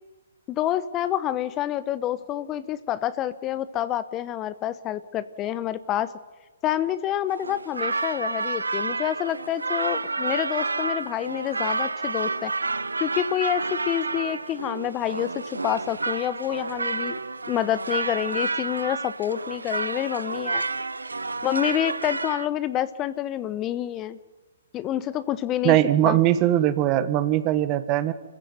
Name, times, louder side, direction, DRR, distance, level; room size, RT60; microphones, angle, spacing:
voice 1, 0.5-6.1 6.6-12.5 13.0-15.3 15.6-17.2 17.5-20.6 21.4-24.2 24.7-25.8 26.1-26.2, left 12 dB, 25° left, 15 dB, 0.8 m, -28 dB
sound 1, 7.3-22.5, right 3 dB, 90° right, 0.9 m, -30 dB
voice 2, 25.6-28.1, right 13 dB, 30° right, 13 dB, 1.4 m, -21 dB
25.5 x 15.5 x 9.3 m, 1.3 s
hypercardioid pair, 130°, 0 cm